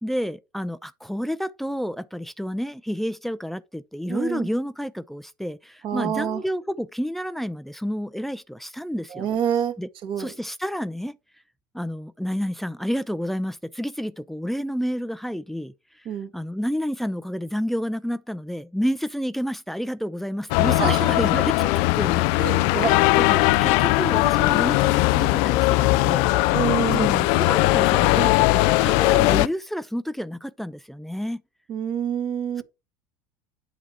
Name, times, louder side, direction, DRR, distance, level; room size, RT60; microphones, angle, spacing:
voice 1, 0.0-9.3 9.8-9.9 10.2-11.2 11.7-15.7 16.3-21.7 22.0-22.8 23.1-26.3 26.9-31.4, equal, ahead, 0.5 m, -30 dB
voice 2, 4.1-4.5 5.8-6.4 9.1-9.7 10.0-10.3 16.0-16.3 20.7-21.1 22.4-23.2 26.5-27.1 31.7-32.6, right 8 dB, 50° right, 1.4 m, -27 dB
sound 1, 20.5-29.5, left 20 dB, 60° left, 0.4 m, -19 dB
8.4 x 2.9 x 5.9 m
hypercardioid pair, 80°, 11 cm